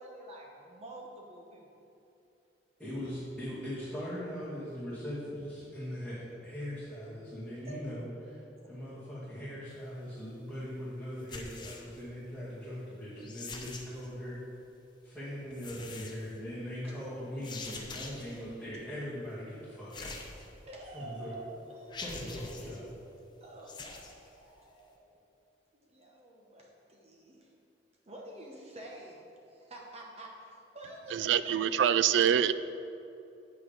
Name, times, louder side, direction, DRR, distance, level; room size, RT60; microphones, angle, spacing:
voice 1, 0.0-1.7 7.7-7.8 8.6-8.9 17.0-17.1 17.7-17.8 18.2-18.3 20.6-22.0 23.4-25.2 25.7-27.5 28.1-31.7, right 1 dB, 35° right, -1 dB, 0.9 m, -48 dB
voice 2, 2.8-8.4 8.7-14.4 15.0-20.2 20.9-21.4 22.0-22.9, equal, ahead, -13 dB, 2.1 m, -40 dB
sound 1, 11.2-12.0 13.2-14.1 15.5-16.3 17.4-18.4 19.9-20.8 21.3-21.4 21.9-22.8 23.6-24.1, left 3 dB, 25° left, 0.7 m, -44 dB
voice 3, 31.1-32.5, right 9 dB, 80° right, 14 dB, 0.3 m, -25 dB
8.5 x 6.2 x 5.2 m, 2.8 s
head